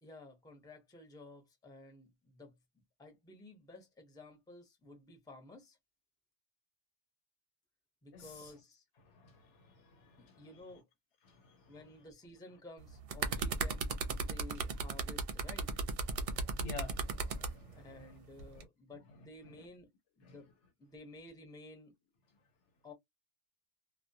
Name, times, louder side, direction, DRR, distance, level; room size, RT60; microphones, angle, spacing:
voice 1, 0.0-2.6 3.0-5.8 8.0-8.8 10.2-10.9 11.7-13.9 14.2-15.7 17.7-19.9 20.2-20.5 20.8-21.9 22.8-22.9, left 2 dB, 5° left, 0.6 m, -53 dB
voice 2, 8.1-8.5 9.0-10.5 11.2-11.7 14.2-14.3 16.1-18.2 18.5-18.7 19.4-19.7 20.2-20.3, left 4 dB, 80° left, 1.0 m, -51 dB
sound 1, 12.8-17.5 18.4-18.6, right 5 dB, 60° right, 0.7 m, -36 dB
2.1 x 2.1 x 2.6 m
omnidirectional pair, 1.2 m